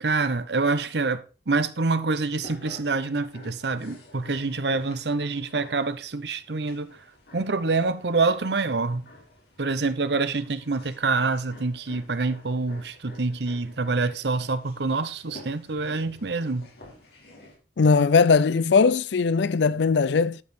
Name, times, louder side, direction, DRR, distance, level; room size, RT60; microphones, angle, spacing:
voice 1, 0.0-6.9 7.3-9.0 9.6-16.7, right 3 dB, 70° right, 0.8 m, -26 dB
sound 1, 2.1-17.6, left 1 dB, 60° left, 3.6 m, -49 dB
voice 2, 17.8-20.4, left 5 dB, 75° left, 0.5 m, -19 dB
12.0 x 5.4 x 4.3 m
head